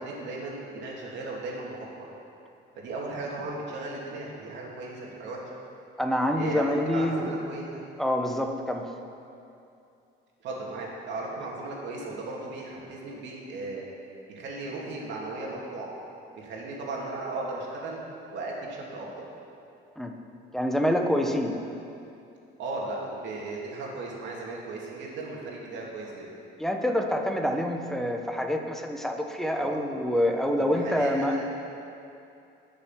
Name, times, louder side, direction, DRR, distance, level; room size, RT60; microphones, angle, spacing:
voice 1, 0.0-2.1 2.7-5.4 6.3-7.8 10.4-13.9 14.3-15.9 16.3-18.0 18.3-19.3 22.6-26.3 29.5-29.8 30.5-31.4, right 2 dB, 70° right, -3 dB, 3.0 m, -36 dB
voice 2, 6.0-7.3 8.0-8.9 20.0-20.1 20.5-21.6 26.6-31.4, equal, ahead, 3 dB, 0.9 m, -26 dB
19.5 x 6.9 x 6.0 m, 2.7 s
cardioid pair, 155°, 19 cm